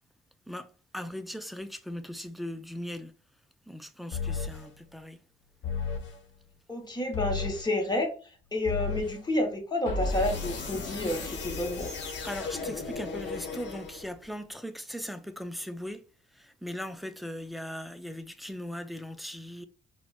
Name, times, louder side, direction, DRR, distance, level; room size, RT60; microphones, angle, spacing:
voice 1, 0.5-3.1 3.7-5.2 12.2-16.0 16.3-19.7, equal, ahead, 0.3 m, -39 dB
sound 1, 4.1-4.7 5.6-6.2 7.1-7.7 8.6-9.2 9.8-14.2, left 4 dB, 65° left, 0.9 m, -34 dB
voice 2, 6.7-8.1 8.5-11.9, left 1 dB, 20° left, 0.9 m, -30 dB
4.2 x 2.1 x 2.2 m
cardioid pair, 90°, 20 cm